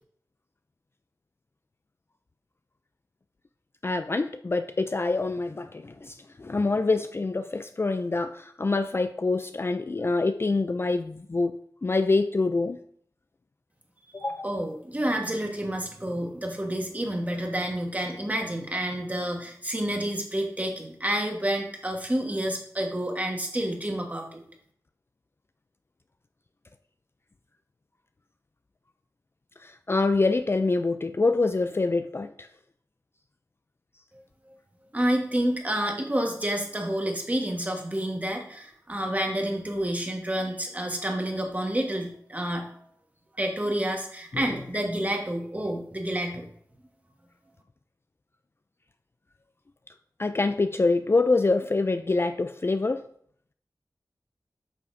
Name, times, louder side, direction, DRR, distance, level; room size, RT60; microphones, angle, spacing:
voice 1, 3.8-12.8 14.1-14.5 29.6-32.5 44.3-44.4 50.2-53.0, left 3 dB, 35° left, 9 dB, 0.3 m, -26 dB
voice 2, 14.4-24.4 34.9-42.8 43.4-46.5, right 1 dB, 20° right, 2 dB, 1.4 m, -29 dB
8.5 x 5.7 x 2.6 m, 0.63 s
wide cardioid pair, 65°, 7 cm